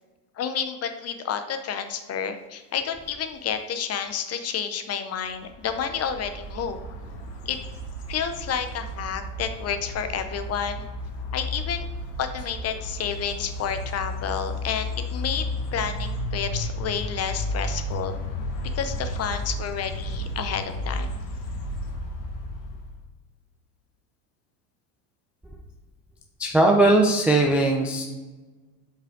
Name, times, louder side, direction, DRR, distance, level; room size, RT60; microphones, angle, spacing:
voice 1, 0.4-6.8 7.5-7.6 8.1-10.9 11.3-11.9 12.2-18.1 18.8-21.1, left 7 dB, 30° left, 8 dB, 0.7 m, -30 dB
sound 1, 5.4-23.0, left 1 dB, 85° left, 1.3 m, -33 dB
voice 2, 26.4-28.0, right 2 dB, 5° right, 0 dB, 0.3 m, -19 dB
5.5 x 4.9 x 3.6 m, 1.2 s
supercardioid pair, 100°, 48 cm